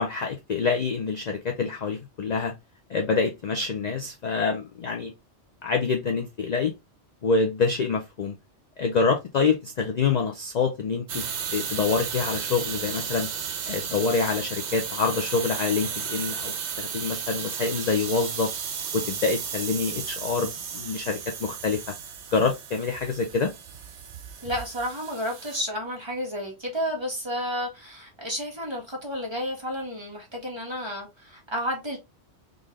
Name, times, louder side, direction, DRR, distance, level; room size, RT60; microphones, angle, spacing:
voice 1, 0.0-2.5 2.9-5.1 5.6-6.7 7.2-8.4 8.8-11.2 11.5-13.3 13.7-18.5 18.9-21.8 22.3-23.5, left 4 dB, 50° left, 0.5 m, -26 dB
sound 1, 11.1-25.6, right 7 dB, 75° right, 1.0 m, -34 dB
voice 2, 24.4-32.0, equal, 25° right, 1.3 m, -31 dB
3.8 x 2.5 x 3.1 m
omnidirectional pair, 1.2 m